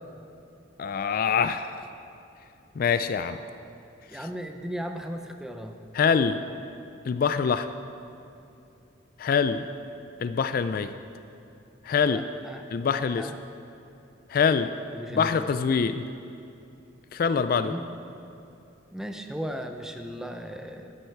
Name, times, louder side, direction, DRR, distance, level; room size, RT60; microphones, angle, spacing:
voice 1, 0.8-1.8 2.8-3.4 4.1-4.3 5.9-6.4 7.1-7.7 9.2-9.7 10.2-10.9 11.8-12.2 12.7-13.3 14.3-14.7 15.1-16.1 17.1-17.7, left 6 dB, 45° left, 11 dB, 0.3 m, -24 dB
voice 2, 4.1-5.8 12.1-13.4 14.9-15.3 17.6-17.9 18.9-20.9, equal, 5° right, 5 dB, 0.6 m, -36 dB
12.5 x 9.9 x 4.6 m, 2.8 s
head